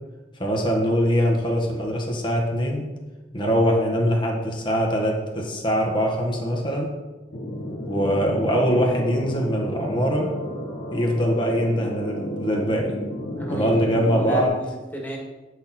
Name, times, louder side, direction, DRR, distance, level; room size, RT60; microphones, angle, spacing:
voice 1, 0.4-2.9 3.3-6.9 7.8-10.3 10.9-12.9 13.5-14.6, equal, 25° left, -1 dB, 1.5 m, -22 dB
sound 1, 7.3-14.5, equal, 80° left, 1.6 m, -32 dB
voice 2, 13.3-15.2, equal, 10° left, -3 dB, 2.1 m, -34 dB
9.9 x 6.5 x 4.4 m, 1.2 s
head